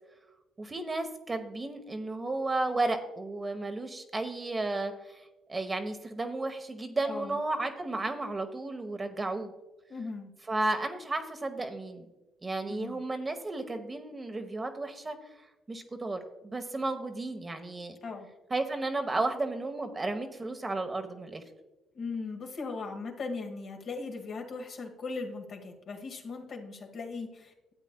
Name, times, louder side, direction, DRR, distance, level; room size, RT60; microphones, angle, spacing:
voice 1, 0.6-9.5 10.5-12.1 12.4-15.2 15.7-18.0 18.5-21.4, right 2 dB, 25° right, 6 dB, 1.0 m, -33 dB
voice 2, 7.0-7.4 9.9-10.3 12.7-13.0 18.0-18.3 21.9-27.7, left 4 dB, 55° left, 3 dB, 1.5 m, -38 dB
12.5 x 8.2 x 2.2 m, 1.0 s
supercardioid pair, 70°, 0 cm